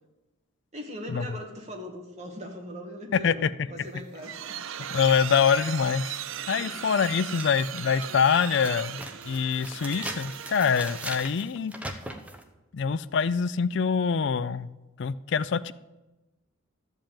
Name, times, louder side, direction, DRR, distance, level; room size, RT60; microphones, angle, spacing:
voice 1, 0.7-4.6 6.6-6.7, equal, 35° right, 1 dB, 2.0 m, -40 dB
sound 1, 3.8-11.4, right 9 dB, 75° right, 0.5 m, -38 dB
voice 2, 4.9-6.2 6.5-11.7 12.7-14.7 15.0-15.7, left 6 dB, 60° left, 17 dB, 0.4 m, -25 dB
sound 2, 6.4-6.5 7.0-12.4, right 1 dB, 5° right, 0.9 m, -40 dB
13.0 x 5.4 x 8.8 m, 1.1 s
head